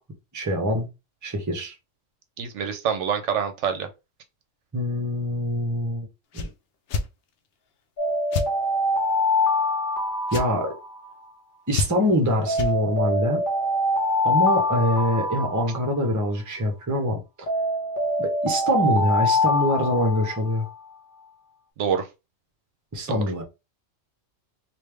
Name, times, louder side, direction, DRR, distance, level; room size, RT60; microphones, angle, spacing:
voice 1, 0.3-0.9 1.2-1.7 4.7-6.1 6.3-6.5 10.3-10.7 11.7-13.4 14.2-17.5 18.2-20.6 22.9-23.4, equal, 20° right, 0.7 m, -24 dB
voice 2, 2.4-3.9 21.8-22.1 23.1-23.2, right 7 dB, 70° right, 0.9 m, -26 dB
sound 1, 6.3-6.5 6.9-7.1 8.3-8.5 10.3-10.5 11.7-12.1 12.5-12.7, left 4 dB, 65° left, 0.7 m, -27 dB
Alarm, 8.0-11.3 12.5-16.3 17.5-20.7, left 1 dB, 40° left, 1.4 m, -25 dB
3.2 x 2.5 x 3.3 m
omnidirectional pair, 1.3 m